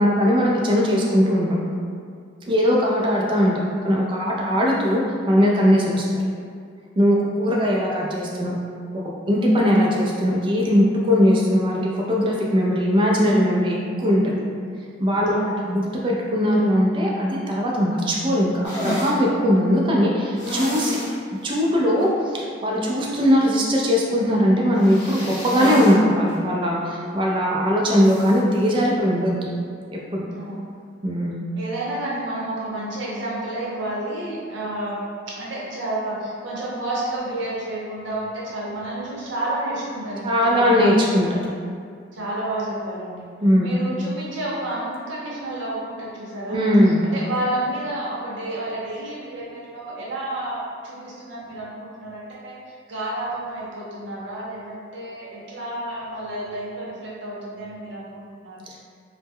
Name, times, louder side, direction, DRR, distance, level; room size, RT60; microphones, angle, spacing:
voice 1, 0.0-1.6 2.5-6.2 7.0-8.6 9.3-14.4 15.0-15.3 15.6-21.0 21.4-29.3 29.9-30.2 31.0-31.4 40.2-41.5 43.4-43.7 46.5-47.0, equal, 25° right, -3 dB, 0.3 m, -20 dB
voice 2, 15.3-15.6 30.3-30.6 31.6-40.9 42.1-43.3 43.6-46.6 46.9-52.5 52.9-58.6, right 1 dB, 75° right, -6 dB, 0.7 m, -30 dB
sound 1, 18.6-19.2 20.4-21.1 21.5-21.6 22.0-22.1 24.8-26.0 26.3-26.4 28.0-28.4, left 1 dB, 70° left, 0.7 m, -29 dB
2.1 x 2.0 x 3.4 m, 2.2 s
head